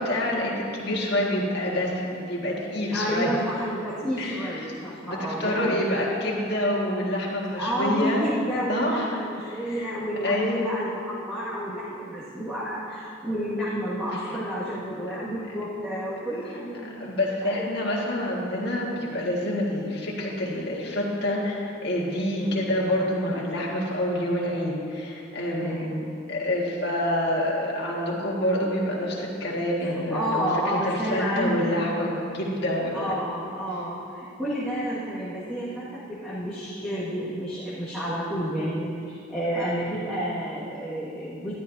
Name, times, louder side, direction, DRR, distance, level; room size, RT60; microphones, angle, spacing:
voice 1, 0.0-3.3 4.2-4.7 5.0-8.2 8.7-9.1 9.5-9.9 10.2-10.8 17.0-25.9 26.3-33.1, left 1 dB, 55° left, -4 dB, 1.8 m, -27 dB
voice 2, 2.9-6.0 7.6-17.1 17.4-17.7 22.4-23.0 23.3-23.4 25.6-26.1 29.8-31.9 32.9-41.5, equal, 5° right, -13 dB, 1.9 m, -30 dB
12.5 x 12.5 x 2.8 m, 2.5 s
head